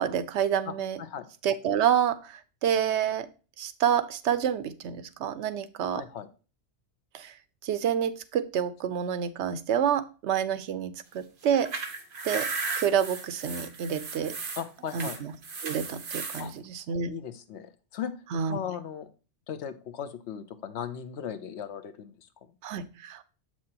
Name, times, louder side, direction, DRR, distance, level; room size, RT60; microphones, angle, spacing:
voice 1, 0.0-1.0 1.4-3.3 3.6-6.0 7.1-7.3 7.6-11.7 12.2-12.5 12.8-14.3 14.9-15.3 15.6-17.1 18.3-18.6 22.6-23.2, right 8 dB, 85° right, 14 dB, 0.9 m, -28 dB
voice 2, 5.9-6.3 14.6-15.2 16.4-16.5 17.1-18.1 18.5-19.1 19.5-22.1, left 8 dB, 85° left, 11 dB, 1.0 m, -37 dB
sound 1, 11.4-16.5, right 4 dB, 55° right, 1.1 m, -35 dB
7.5 x 5.9 x 2.8 m, 0.34 s
omnidirectional pair, 1.1 m